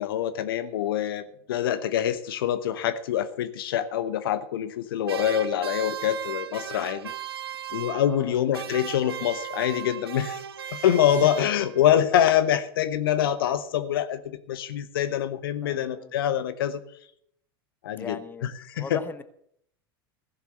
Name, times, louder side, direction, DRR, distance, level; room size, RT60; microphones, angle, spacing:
voice 1, 0.0-7.1 7.7-10.4 10.7-16.8 17.8-19.0, left 10 dB, 70° left, 12 dB, 0.9 m, -25 dB
sound 1, 5.0-8.3 8.5-11.9, right 9 dB, 80° right, 0.5 m, -36 dB
voice 2, 8.0-8.4 11.1-11.3 15.6-16.1 18.0-18.5 18.7-19.2, left 4 dB, 15° left, 12 dB, 1.1 m, -38 dB
15.5 x 7.1 x 7.7 m, 0.68 s
figure-of-eight pair, 80°, 13 cm